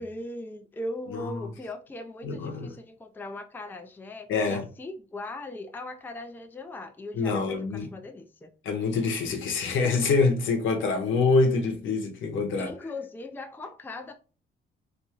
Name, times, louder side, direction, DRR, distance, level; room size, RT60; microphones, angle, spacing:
voice 1, 0.0-8.5 12.6-14.1, left 2 dB, 10° left, 0.4 m, -39 dB
voice 2, 1.1-1.5 2.2-2.7 4.3-4.7 7.1-7.9 8.6-12.7, left 4 dB, 75° left, 0.9 m, -25 dB
3.6 x 2.6 x 2.8 m
cardioid pair, 90°, 20 cm